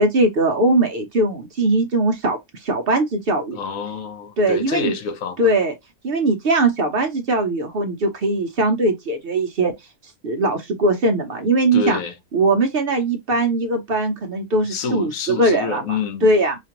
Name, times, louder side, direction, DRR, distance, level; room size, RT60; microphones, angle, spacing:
voice 1, 0.0-3.6 4.4-4.9 5.4-5.7 6.0-9.7 10.2-12.0 12.3-16.6, right 2 dB, 55° right, 0.7 m, -20 dB
voice 2, 3.5-5.4 11.7-12.1 14.7-16.3, left 5 dB, 75° left, 1.2 m, -27 dB
5.0 x 2.4 x 2.9 m
omnidirectional pair, 1.5 m